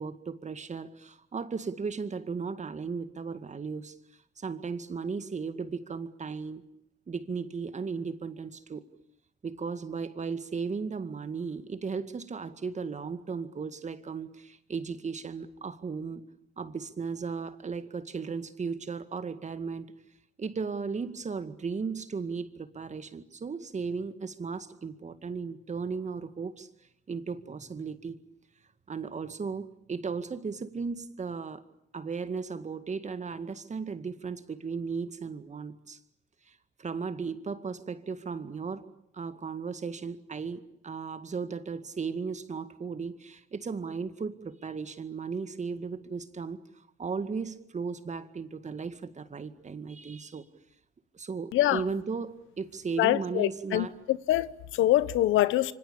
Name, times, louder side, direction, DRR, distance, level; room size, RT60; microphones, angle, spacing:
voice 1, 0.0-3.9 4.4-6.7 7.1-8.8 9.4-16.2 16.6-19.9 20.4-26.7 27.1-28.2 28.9-31.6 31.9-36.0 36.5-38.8 39.1-46.6 47.0-50.5 51.1-54.0, right 5 dB, 35° right, 2.1 m, -36 dB
voice 2, 53.0-55.7, left 14 dB, 90° left, 1.0 m, -25 dB
27.5 x 25.0 x 8.8 m
cardioid pair, 90°, 20 cm